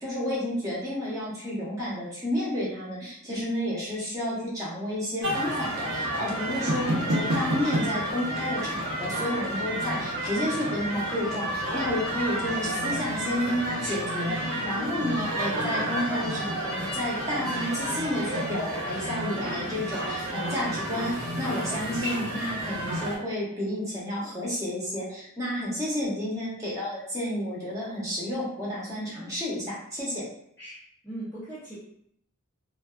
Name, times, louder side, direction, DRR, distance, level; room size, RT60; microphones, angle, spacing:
voice 1, 0.0-30.2, left 1 dB, 15° right, -7 dB, 0.8 m, -31 dB
sound 1, 5.2-23.2, right 1 dB, 70° right, 0.7 m, -30 dB
voice 2, 30.6-31.8, right 1 dB, 10° left, -10 dB, 0.5 m, -39 dB
2.5 x 2.3 x 2.3 m, 0.68 s
head